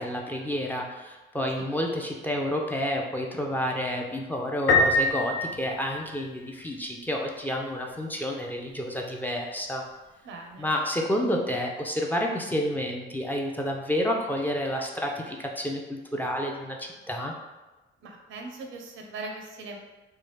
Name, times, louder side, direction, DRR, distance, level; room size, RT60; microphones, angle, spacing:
voice 1, 0.0-9.8 10.6-17.3, equal, 10° left, 0 dB, 0.4 m, -30 dB
Piano, 4.7-6.5, left 2 dB, 70° left, 0.5 m, -24 dB
voice 2, 10.2-10.7 18.0-19.8, right 3 dB, 80° right, 2 dB, 0.6 m, -40 dB
3.2 x 2.3 x 3.1 m, 1.1 s
cardioid pair, 90°, 20 cm